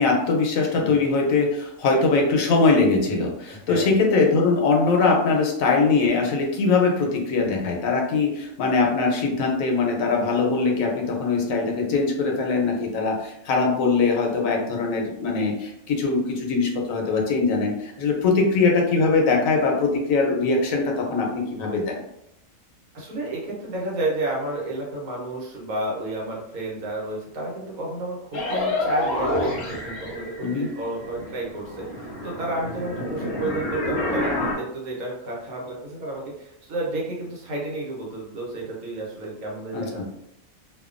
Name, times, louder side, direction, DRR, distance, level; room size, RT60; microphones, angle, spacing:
voice 1, 0.0-22.0 30.4-30.7 39.7-39.8, left 4 dB, 75° left, 1 dB, 1.0 m, -22 dB
voice 2, 0.7-1.0 3.5-4.1 22.9-40.0, right 2 dB, 85° right, -2 dB, 1.3 m, -31 dB
sound 1, 28.3-30.8 31.0-34.5, left 2 dB, 45° left, 0.7 m, -28 dB
2.7 x 2.2 x 2.4 m, 0.78 s
omnidirectional pair, 1.5 m